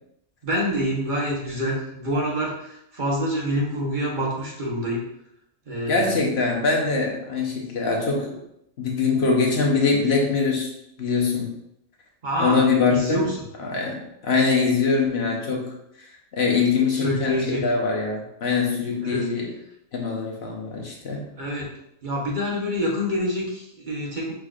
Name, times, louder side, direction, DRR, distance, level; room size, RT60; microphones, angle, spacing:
voice 1, 0.4-5.0 5.7-6.6 12.2-12.6 12.9-13.4 16.9-17.6 19.0-19.3 21.4-21.7 22.0-24.3, equal, 40° right, -3 dB, 1.2 m, -27 dB
voice 2, 5.8-8.4 8.8-10.7 11.0-11.6 12.4-13.3 13.6-19.5 19.9-21.3, left 4 dB, 60° left, -1 dB, 1.1 m, -23 dB
6.4 x 3.3 x 2.5 m, 0.79 s
omnidirectional pair, 1.3 m